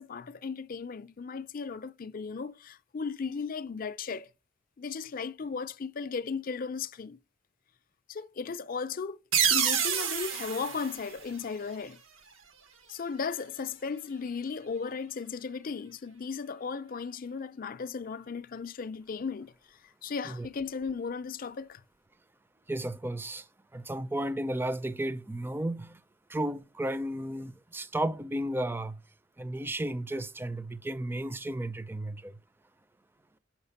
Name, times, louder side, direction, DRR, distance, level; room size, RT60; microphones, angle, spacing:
voice 1, 0.0-4.3 4.8-7.2 8.1-9.2 9.4-12.0 12.9-19.5 20.0-21.8, left 5 dB, 45° left, 0.5 m, -36 dB
sound 1, 9.3-11.9, right 8 dB, 90° right, 1.1 m, -29 dB
voice 2, 22.7-23.4 23.7-26.0 26.3-29.0 29.4-32.3, right 1 dB, 10° right, 0.4 m, -33 dB
6.3 x 5.9 x 5.4 m
head